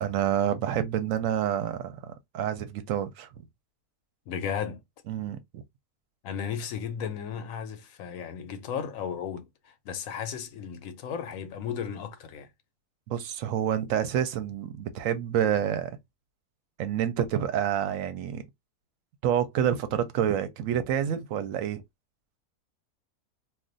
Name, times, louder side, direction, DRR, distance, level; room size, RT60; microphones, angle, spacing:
voice 1, 0.0-3.3 5.1-5.6 13.1-15.9 16.8-18.4 19.2-21.8, right 9 dB, 70° right, 0.9 m, -28 dB
voice 2, 4.3-4.8 6.2-12.5, left 7 dB, 70° left, 0.9 m, -35 dB
2.5 x 2.3 x 3.8 m
omnidirectional pair, 1.7 m